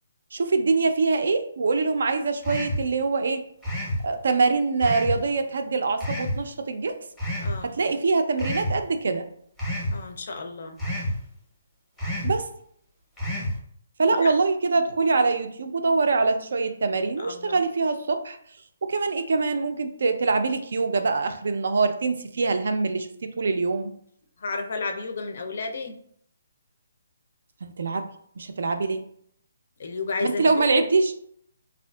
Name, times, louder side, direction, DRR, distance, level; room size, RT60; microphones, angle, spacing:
voice 1, 0.3-3.4 4.0-6.9 7.6-9.3 12.2-12.5 14.0-18.4 18.8-23.1 23.4-23.9 27.6-28.1 28.4-29.0 30.2-31.2, right 4 dB, 65° right, 8 dB, 0.3 m, -24 dB
sound 1, 2.4-2.9 3.6-4.0 4.8-5.2 6.0-6.4 7.2-7.5 8.4-8.8 9.6-10.0 10.8-11.2 12.0-12.4 13.2-13.6, left 1 dB, ahead, 0.6 m, -28 dB
voice 2, 7.4-7.7 9.9-10.8 14.1-14.3 17.2-17.6 24.4-26.0 29.8-30.5, left 4 dB, 55° left, 5 dB, 0.4 m, -32 dB
3.5 x 2.4 x 2.2 m, 0.67 s
hypercardioid pair, 170°, 0 cm